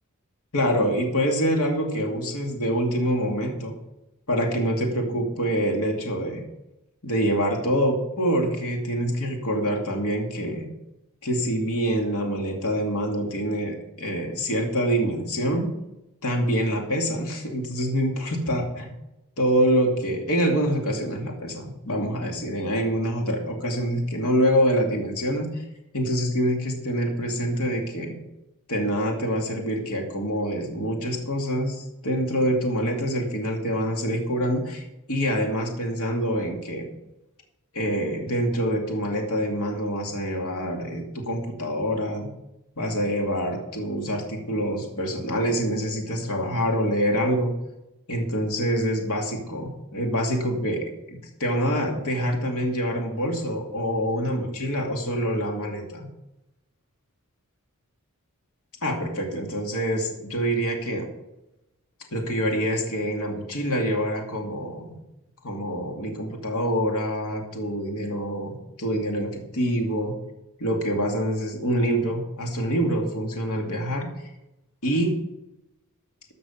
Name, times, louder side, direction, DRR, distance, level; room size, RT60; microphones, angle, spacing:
voice 1, 0.5-3.7 4.3-6.4 7.0-10.7 11.2-15.7 16.2-18.9 19.4-25.6 25.9-28.2 28.7-36.9 37.7-42.3 42.8-47.5 48.1-56.1 58.8-61.1 62.1-65.0 65.4-70.1 70.6-74.3 74.8-75.2, equal, 85° left, 1 dB, 2.4 m, -26 dB
14.0 x 6.8 x 5.5 m, 0.91 s
head